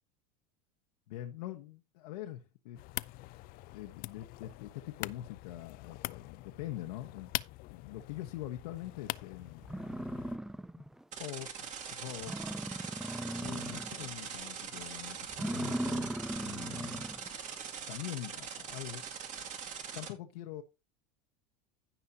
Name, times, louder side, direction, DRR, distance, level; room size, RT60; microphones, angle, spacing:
voice 1, 1.1-2.8 3.7-7.3 7.7-9.7 10.8-10.9 11.2-12.5 13.4-17.1 17.9-19.0 19.9-20.6, left 14 dB, 75° left, 1.3 m, -44 dB
sound 1, 2.8-10.4, left 20 dB, 50° left, 0.5 m, -43 dB
sound 2, 9.2-9.3 9.6-11.0 11.4-11.5 11.9-12.0 12.2-14.1 14.5-14.8 15.3-17.3, right 1 dB, ahead, 0.4 m, -38 dB
sound 3, 11.1-20.1, right 7 dB, 40° right, 2.3 m, -42 dB
16.0 x 5.5 x 2.8 m
supercardioid pair, 105°, 19 cm